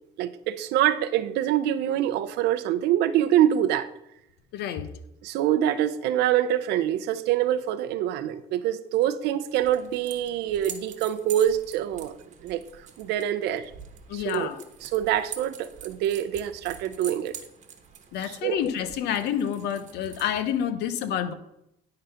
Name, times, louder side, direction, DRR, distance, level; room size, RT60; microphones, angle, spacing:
voice 1, 0.2-3.9 5.2-12.2 12.4-12.6 13.0-13.7 14.1-14.5 14.8-17.4 18.2-18.6, right 11 dB, 85° right, 13 dB, 0.6 m, -25 dB
voice 2, 4.5-4.9 14.1-14.6 18.1-21.3, left 9 dB, 85° left, 11 dB, 0.7 m, -28 dB
sound 1, 9.4-20.6, right 7 dB, 45° right, 1.1 m, -45 dB
10.5 x 3.9 x 5.6 m, 0.82 s
cardioid pair, 110°, 17 cm